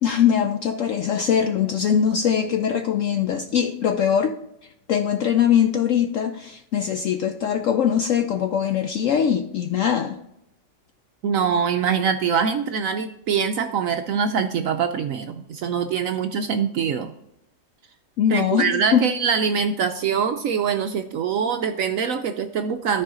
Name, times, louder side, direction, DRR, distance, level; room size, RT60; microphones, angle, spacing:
voice 1, 0.0-4.4 4.9-10.2 18.2-19.0, left 8 dB, 75° left, 0.7 m, -21 dB
voice 2, 11.2-17.1 18.3-23.0, right 6 dB, 70° right, 0.8 m, -23 dB
13.0 x 4.8 x 3.7 m
omnidirectional pair, 1.8 m